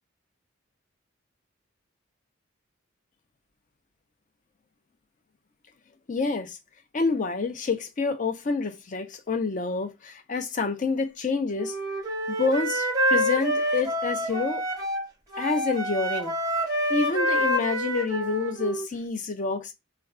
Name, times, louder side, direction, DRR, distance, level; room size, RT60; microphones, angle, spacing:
voice 1, 6.1-6.6 6.9-11.8 12.3-14.6 15.4-16.3 16.9-19.7, left 4 dB, 40° left, 0.5 m, -28 dB
Wind instrument woodwind instrument, 11.6-15.0 15.3-18.9, equal, 20° right, 0.7 m, -27 dB
2.3 x 2.2 x 3.5 m
head